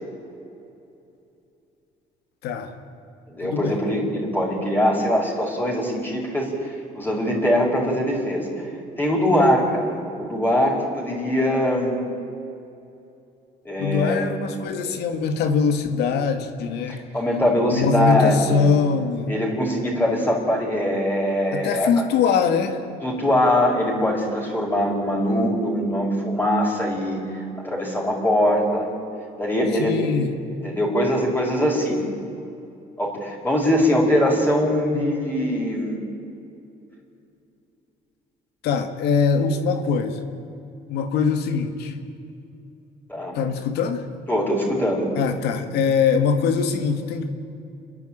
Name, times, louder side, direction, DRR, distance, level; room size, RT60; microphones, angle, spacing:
voice 1, 2.4-2.7 3.4-3.8 13.8-17.0 17.7-19.3 21.5-22.8 29.7-30.3 38.6-40.2 40.9-41.9 43.3-44.1 45.2-47.3, left 5 dB, 80° left, 7 dB, 2.0 m, -22 dB
voice 2, 3.3-8.7 9.0-12.0 13.7-14.3 16.9-18.7 19.3-21.9 23.0-27.2 27.6-28.9 29.4-30.1 30.6-32.0 33.0-36.0 43.1-43.4 44.3-45.1, equal, 10° left, -2 dB, 5.5 m, -22 dB
29.0 x 10.5 x 9.0 m, 2.7 s
cardioid pair, 110°, 17 cm